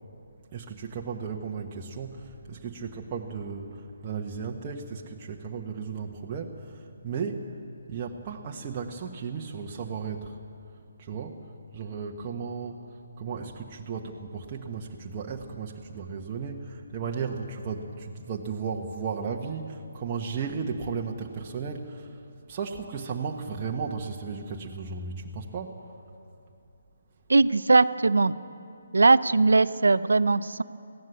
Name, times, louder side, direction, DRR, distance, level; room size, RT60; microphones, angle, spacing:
voice 1, 0.5-7.5 7.9-10.4 11.0-11.4 11.7-12.8 13.2-22.2 22.5-25.7, right 5 dB, 30° right, -1 dB, 1.3 m, -35 dB
voice 2, 27.3-28.3 28.9-30.6, right 3 dB, 75° right, 15 dB, 0.6 m, -20 dB
21.0 x 16.0 x 8.5 m, 2.6 s
figure-of-eight pair, 145°, 0 cm